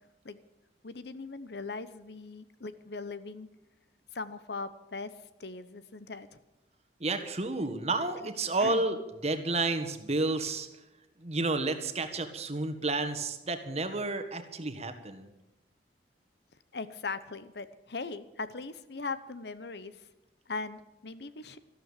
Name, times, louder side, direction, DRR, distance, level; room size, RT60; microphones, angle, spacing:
voice 1, 0.8-3.5 4.1-5.1 5.4-6.4 8.6-8.9 16.7-20.0 20.5-21.6, left 3 dB, 65° left, 14 dB, 0.9 m, -39 dB
voice 2, 7.0-9.0 9.2-10.7 11.2-15.3, right 3 dB, 35° right, 8 dB, 1.6 m, -31 dB
14.0 x 12.5 x 7.3 m, 0.98 s
head